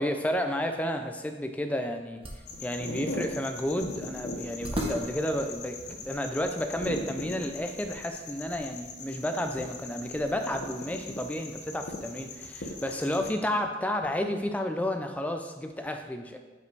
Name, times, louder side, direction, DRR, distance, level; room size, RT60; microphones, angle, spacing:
voice 1, 0.0-2.2 2.6-16.4, left 1 dB, 10° left, 5 dB, 0.4 m, -31 dB
sound 1, 1.1-6.5, equal, 30° right, 0.8 m, -40 dB
sound 2, 2.5-13.3, left 2 dB, 65° left, 0.8 m, -40 dB
5.2 x 5.0 x 4.6 m, 1.3 s
head